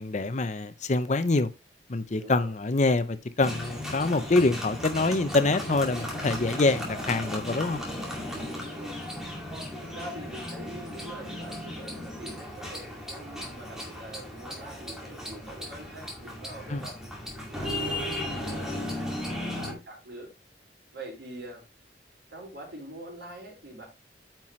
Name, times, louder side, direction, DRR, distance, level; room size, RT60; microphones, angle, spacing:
voice 1, 0.0-1.5 1.9-7.8 16.7-16.8, left 3 dB, 40° left, 0.6 m, -25 dB
voice 2, 2.2-2.5 8.6-9.0 9.8-17.0 17.5-20.3 20.9-21.6 22.3-23.9, right 1 dB, 70° right, 4.7 m, -44 dB
sound 1, 3.4-19.7, left 1 dB, 5° right, 2.2 m, -36 dB
9.0 x 5.8 x 3.1 m
head